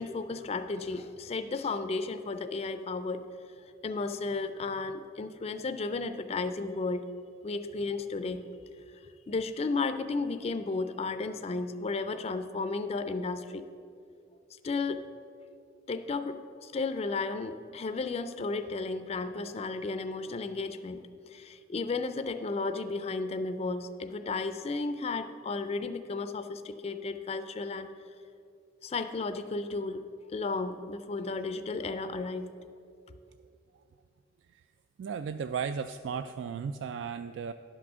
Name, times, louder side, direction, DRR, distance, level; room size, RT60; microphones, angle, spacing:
voice 1, 0.0-3.2 3.8-7.1 7.4-8.4 9.3-13.7 14.6-15.1 15.9-27.9 28.8-30.0 30.3-32.5, left 3 dB, 35° left, 9 dB, 0.4 m, -33 dB
voice 2, 35.0-37.5, right 6 dB, 80° right, 10 dB, 0.3 m, -35 dB
11.0 x 6.1 x 6.1 m, 2.5 s
head